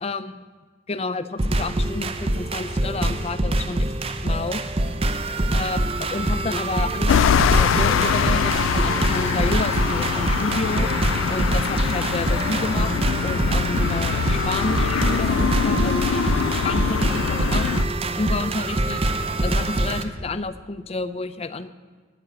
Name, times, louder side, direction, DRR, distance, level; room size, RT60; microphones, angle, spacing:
voice 1, 0.0-0.4 0.9-3.9 4.2-4.6 5.5-10.9 11.3-12.9 13.2-16.3 16.6-17.7 18.2-19.0 19.4-21.8, left 3 dB, 30° left, 12 dB, 0.5 m, -30 dB
sound 1, 1.4-20.0, right 2 dB, 30° right, 0.7 m, -24 dB
sound 2, 7.1-17.8, left 8 dB, 80° left, 0.3 m, -23 dB
11.0 x 9.9 x 8.1 m, 1.4 s
head